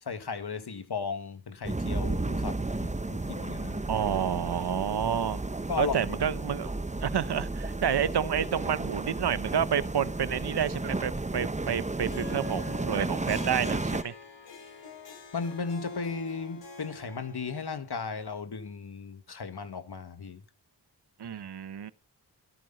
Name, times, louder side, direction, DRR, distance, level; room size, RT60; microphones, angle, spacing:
voice 1, 0.0-3.9 5.7-6.1 15.3-20.4, left 5 dB, 65° left, 1.8 m, -35 dB
sound 1, 1.6-14.0, right 2 dB, 15° right, 0.9 m, -33 dB
voice 2, 3.9-5.4 5.8-6.7 7.0-14.1 21.2-21.9, right 8 dB, 65° right, 0.9 m, -29 dB
Harp, 12.0-17.8, left 4 dB, 85° left, 4.5 m, -45 dB
13.0 x 12.5 x 5.3 m
cardioid pair, 50°, 42 cm